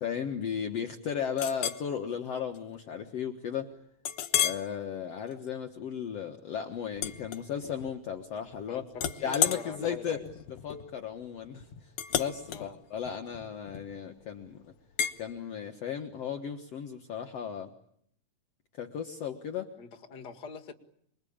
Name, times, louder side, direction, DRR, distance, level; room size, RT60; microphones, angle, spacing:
voice 1, 0.0-3.7 4.4-8.8 9.2-10.2 10.6-14.6 15.2-17.7 18.8-19.7, left 8 dB, 55° left, 4 dB, 2.3 m, -35 dB
Chink clink, 1.4-1.9 2.4-2.6 3.0-3.1 4.0-4.7 5.2-5.5 6.9-7.9 8.2-8.6 8.9-14.1 15.0-15.2, left 10 dB, 75° left, 2.6 m, -33 dB
voice 2, 8.7-10.3 12.5-12.8 19.8-20.7, left 5 dB, 35° left, 6 dB, 2.4 m, -43 dB
27.5 x 22.0 x 8.7 m, 0.69 s
omnidirectional pair, 3.6 m